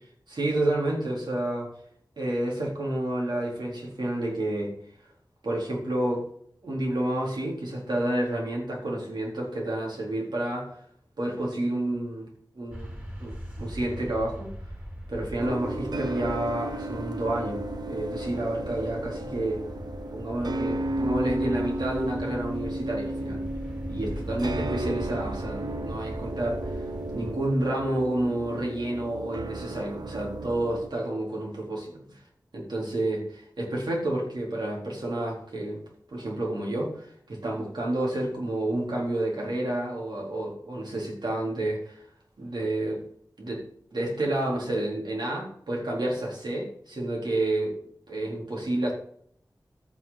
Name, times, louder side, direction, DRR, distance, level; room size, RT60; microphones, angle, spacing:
voice 1, 0.3-1.7 2.2-4.7 5.4-6.2 6.6-10.8 11.2-12.3 12.5-12.9 13.2-14.5 15.1-17.6 17.9-19.6 20.1-23.4 23.9-26.8 27.1-32.2 32.5-35.8 36.1-42.0 42.4-43.0 43.4-43.6 43.9-47.7 48.1-48.9, right 1 dB, 85° right, -3 dB, 4.0 m, -29 dB
sound 1, 12.7-27.3, equal, 25° right, 3.6 m, -39 dB
sound 2, 15.4-30.9, right 1 dB, 70° right, 0.9 m, -34 dB
14.5 x 6.1 x 4.2 m, 0.64 s
wide cardioid pair, 75°, 7 cm